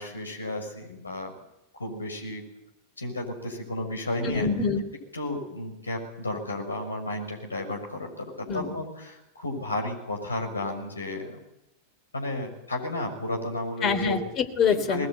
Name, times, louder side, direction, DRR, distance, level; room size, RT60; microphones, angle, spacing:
voice 1, 0.0-1.3 1.7-2.4 3.0-4.5 5.1-11.4 12.1-14.2 14.9-15.1, left 1 dB, 80° left, 2 dB, 6.4 m, -33 dB
voice 2, 4.2-4.8 8.5-8.7 13.8-15.1, left 6 dB, 30° left, 6 dB, 3.3 m, -25 dB
21.0 x 20.0 x 9.2 m, 0.89 s
figure-of-eight pair, 90°, 0 cm